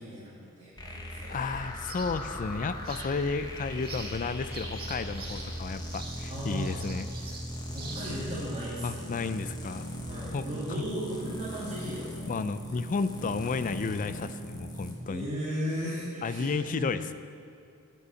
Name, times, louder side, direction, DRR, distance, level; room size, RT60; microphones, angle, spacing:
voice 1, 0.0-1.3 6.3-6.7 7.7-9.1 10.1-12.3 15.1-16.9, equal, 25° right, -10 dB, 2.5 m, -36 dB
sound 1, 0.8-14.9, equal, 20° left, 1.3 m, -39 dB
voice 2, 1.3-7.1 8.8-10.5 12.3-15.3 16.2-17.1, left 4 dB, 35° left, 12 dB, 0.4 m, -32 dB
sound 2, 1.9-8.5, right 3 dB, 45° right, 1.6 m, -45 dB
9.9 x 6.9 x 7.7 m, 2.4 s
head